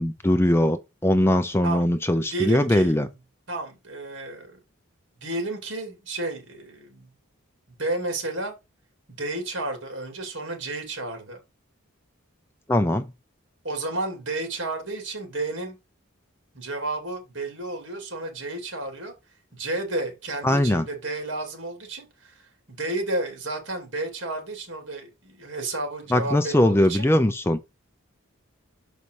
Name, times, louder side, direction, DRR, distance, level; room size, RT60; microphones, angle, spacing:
voice 1, 0.0-3.1 12.7-13.1 20.4-20.9 26.1-27.6, left 1 dB, 10° left, 0.4 m, -21 dB
voice 2, 1.6-2.9 3.5-4.6 5.2-7.1 7.8-8.5 9.1-11.4 13.6-15.8 16.5-19.1 19.5-27.1, right 2 dB, 55° right, 2.9 m, -32 dB
6.6 x 5.4 x 4.7 m
head